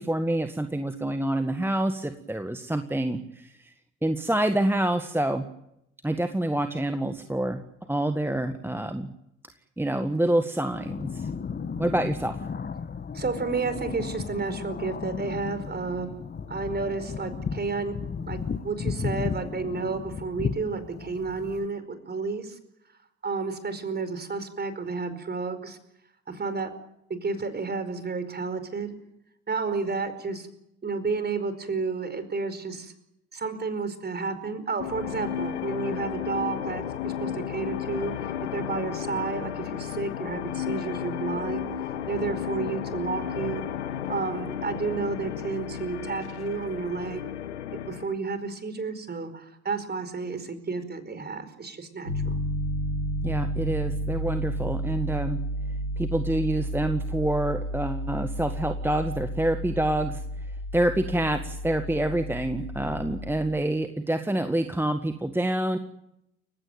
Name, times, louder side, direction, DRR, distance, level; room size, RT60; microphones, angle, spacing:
voice 1, 0.0-3.7 4.0-5.4 6.0-7.6 7.9-9.1 9.8-11.3 11.8-12.3 53.2-55.4 56.0-60.5 60.7-65.8, right 1 dB, 5° right, 8 dB, 1.7 m, -27 dB
sound 1, 10.7-21.7, left 6 dB, 30° left, 1.8 m, -34 dB
voice 2, 13.1-16.1 16.5-17.9 18.3-18.4 18.6-22.6 23.2-25.8 26.3-26.7 27.1-28.9 29.5-30.5 30.8-32.9 33.3-41.7 42.1-43.6 44.1-47.2 47.9-52.4, right 4 dB, 30° right, 11 dB, 4.8 m, -31 dB
sound 2, 34.8-48.1, left 9 dB, 75° left, 1.3 m, -33 dB
Piano, 52.1-63.4, equal, 90° right, 6.6 m, -32 dB
30.0 x 16.5 x 9.2 m, 0.82 s
figure-of-eight pair, 50°, 34 cm